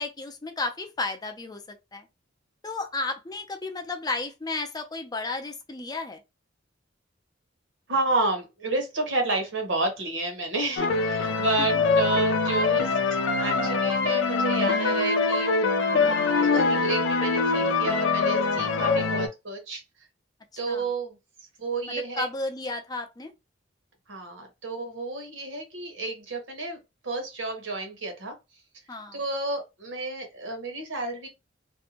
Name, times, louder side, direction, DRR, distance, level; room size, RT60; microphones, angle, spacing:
voice 1, 0.0-1.6 1.9-2.1 2.6-6.2 11.2-11.5 13.5-13.7 16.0-16.4 18.7-19.1 20.7-20.8 21.9-23.3 28.9-29.2, left 3 dB, 20° left, 0.5 m, -33 dB
voice 2, 7.9-13.0 13.4-15.5 16.4-19.8 20.6-21.2 21.6-22.3 24.1-26.8 27.0-28.3 29.1-31.3, right 3 dB, 70° right, 1.0 m, -30 dB
sound 1, 10.8-19.3, left 4 dB, 75° left, 0.5 m, -24 dB
2.6 x 2.1 x 2.8 m
head